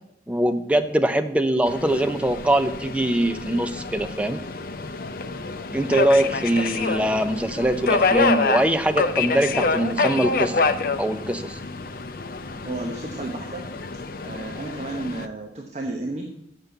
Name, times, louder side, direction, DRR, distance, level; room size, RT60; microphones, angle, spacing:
voice 1, 0.3-4.4 5.7-10.7 11.0-11.6, right 1 dB, 5° right, 8 dB, 0.5 m, -22 dB
Subway metro underground, 1.7-15.3, left 4 dB, 50° left, 0.5 m, -27 dB
voice 2, 12.7-13.7 14.2-16.2, right 2 dB, 35° right, 2 dB, 0.9 m, -32 dB
7.4 x 6.7 x 7.9 m, 0.79 s
head